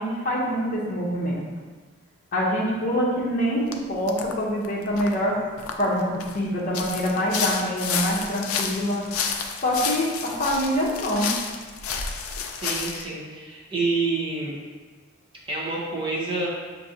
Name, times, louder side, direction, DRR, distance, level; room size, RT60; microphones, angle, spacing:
voice 1, 0.0-1.4 2.3-5.4 5.8-9.0 9.6-11.3, equal, 40° left, -5 dB, 0.7 m, -25 dB
sound 1, 3.7-3.8 4.1-4.3 4.6-6.4 6.7-13.0, left 6 dB, 90° left, 0.4 m, -30 dB
voice 2, 12.6-14.6 15.5-16.5, right 3 dB, 25° right, -5 dB, 0.8 m, -28 dB
5.9 x 2.6 x 2.8 m, 1.4 s
head